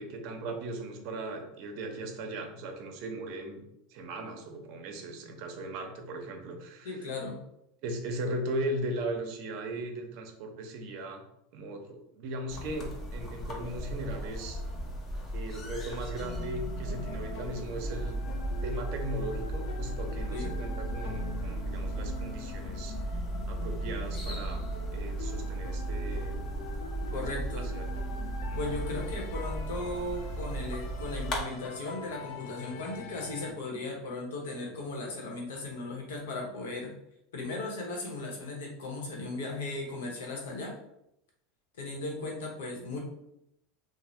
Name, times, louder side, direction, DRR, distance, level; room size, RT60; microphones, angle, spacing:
voice 1, 0.0-3.6 3.9-7.1 7.8-11.2 11.5-14.6 15.3-18.2 18.6-22.9 23.5-24.6 24.9-26.4 27.1-27.9 28.5-28.7, right 1 dB, 60° right, 4 dB, 0.6 m, -38 dB
voice 2, 6.8-7.4 20.3-20.5 27.1-27.8 28.6-36.9 37.3-40.7 41.8-43.0, left 2 dB, 90° left, 0 dB, 0.8 m, -37 dB
sound 1, 12.5-31.4, right 2 dB, 40° left, 0.7 m, -36 dB
sound 2, 16.2-33.5, left 7 dB, 65° left, 0.3 m, -44 dB
2.6 x 2.0 x 3.1 m, 0.79 s
supercardioid pair, 115°, 0 cm